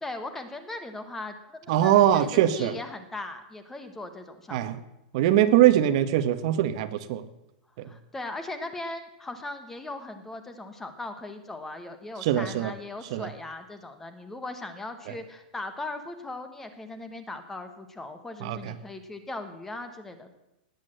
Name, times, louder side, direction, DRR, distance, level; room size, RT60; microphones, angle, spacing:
voice 1, 0.0-4.8 7.8-20.3, left 2 dB, 5° left, 9 dB, 1.1 m, -39 dB
voice 2, 1.7-2.7 4.5-4.8 5.1-7.2 7.8-7.9 12.2-12.7 13.1-13.3 18.4-18.6, right 12 dB, 45° right, 12 dB, 1.0 m, -22 dB
19.0 x 8.2 x 7.7 m, 0.90 s
supercardioid pair, 170°, 5 cm